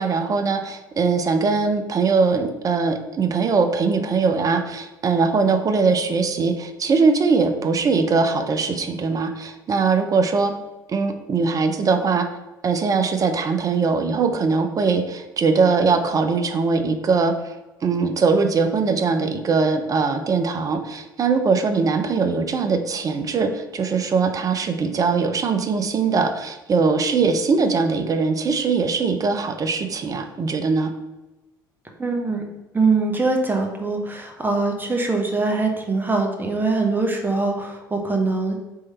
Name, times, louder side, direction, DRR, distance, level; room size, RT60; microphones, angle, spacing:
voice 1, 0.0-10.5 10.9-12.3 12.6-17.5 17.8-30.9, right 4 dB, 30° right, 6 dB, 0.6 m, -21 dB
voice 2, 32.0-32.4 32.7-38.6, right 3 dB, 15° right, 3 dB, 1.1 m, -22 dB
3.7 x 3.2 x 4.2 m, 1.1 s
hypercardioid pair, 65°, 11 cm